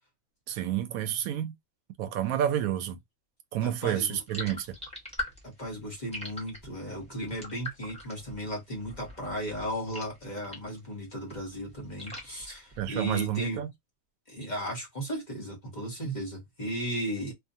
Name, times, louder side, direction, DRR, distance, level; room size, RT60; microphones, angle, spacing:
voice 1, 0.5-1.5 2.0-3.0 3.5-4.7 12.8-13.7, right 11 dB, 85° right, 1.0 m, -29 dB
voice 2, 3.6-4.2 5.4-13.6 14.3-17.3, equal, 35° left, 0.9 m, -35 dB
sound 1, 4.3-10.9 11.2-13.3, left 1 dB, 5° left, 1.1 m, -43 dB
2.6 x 2.4 x 2.6 m
omnidirectional pair, 1.4 m